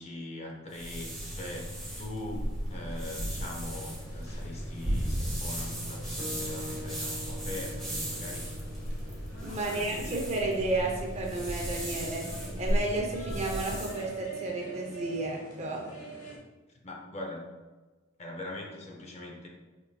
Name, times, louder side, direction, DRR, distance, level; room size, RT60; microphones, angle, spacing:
voice 1, 0.0-8.5 9.5-10.2 16.8-17.5 18.2-19.5, left 1 dB, 30° left, 0 dB, 0.5 m, -41 dB
sound 1, 0.7-14.0, equal, ahead, 1.2 m, -35 dB
sound 2, 2.7-16.4, right 1 dB, 90° left, 1.1 m, -47 dB
sound 3, 6.2-10.4, equal, 75° right, 0.6 m, -45 dB
voice 2, 9.4-15.8, right 2 dB, 30° right, -1 dB, 0.7 m, -32 dB
4.9 x 3.5 x 2.3 m, 1.3 s
head